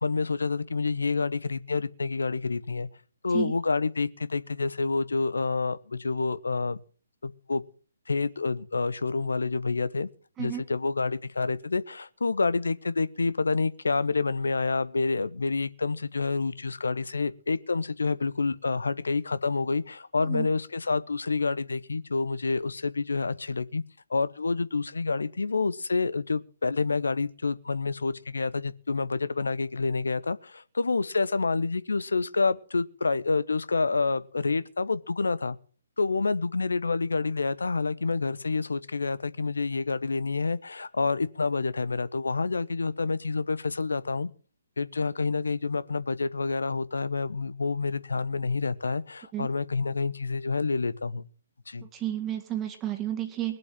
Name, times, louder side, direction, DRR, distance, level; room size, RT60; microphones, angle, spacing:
voice 1, 0.0-2.9 3.2-6.8 7.2-7.6 8.1-10.1 10.4-23.8 24.1-35.6 36.0-44.3 44.8-51.3 51.7-51.9, left 4 dB, 65° left, 1.0 m, -28 dB
voice 2, 51.8-53.6, right 12 dB, 15° right, 1.9 m, -32 dB
21.0 x 7.7 x 7.5 m
figure-of-eight pair, 135°, 0 cm